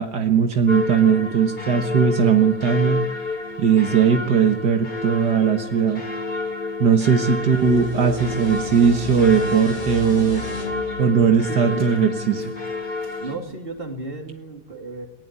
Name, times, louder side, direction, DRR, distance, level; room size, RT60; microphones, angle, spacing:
voice 1, 0.0-3.0 3.6-6.0 6.8-10.4 11.0-12.5, right 7 dB, 75° right, 5 dB, 2.1 m, -19 dB
sound 1, 0.7-13.4, left 3 dB, 75° left, 4.7 m, -29 dB
sound 2, 7.2-12.6, left 3 dB, 30° left, 3.0 m, -35 dB
voice 2, 11.5-11.9 13.2-15.1, right 2 dB, 30° right, 3 dB, 3.4 m, -33 dB
19.5 x 19.5 x 9.9 m, 0.91 s
omnidirectional pair, 1.8 m